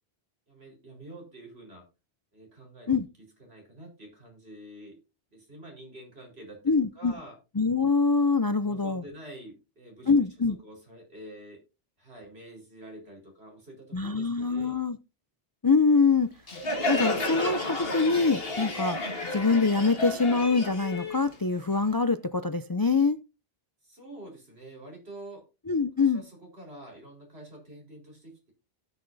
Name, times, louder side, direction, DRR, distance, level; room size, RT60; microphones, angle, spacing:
voice 1, 0.5-1.9 2.3-5.0 5.3-7.4 8.6-11.6 12.0-14.8 23.8-25.5 25.9-28.5, right 1 dB, 80° right, 4.8 m, -47 dB
voice 2, 6.7-7.1 7.6-9.0 10.1-10.6 13.9-15.0 15.6-16.3 16.9-19.0 19.3-23.2 25.7-26.2, left 4 dB, 35° left, 0.4 m, -24 dB
Crowd, 16.5-21.9, left 2 dB, 65° left, 2.2 m, -31 dB
17.5 x 6.8 x 2.7 m
omnidirectional pair, 1.0 m